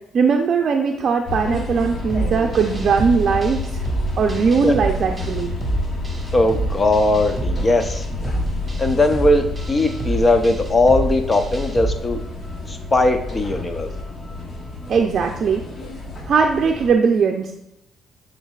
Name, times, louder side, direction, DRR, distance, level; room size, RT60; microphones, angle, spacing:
voice 1, 0.1-3.8 4.2-5.5 14.9-15.6 16.3-17.5, right 5 dB, 55° right, 2 dB, 0.5 m, -19 dB
sound 1, 1.3-16.9, left 2 dB, 50° left, 1.3 m, -29 dB
sound 2, 2.1-12.0, right 2 dB, 20° right, 1.3 m, -28 dB
voice 2, 6.3-8.0 8.8-12.2 12.7-13.9, left 2 dB, 30° left, 6 dB, 0.6 m, -19 dB
10.5 x 3.9 x 2.4 m, 0.86 s
cardioid pair, 90°, 0 cm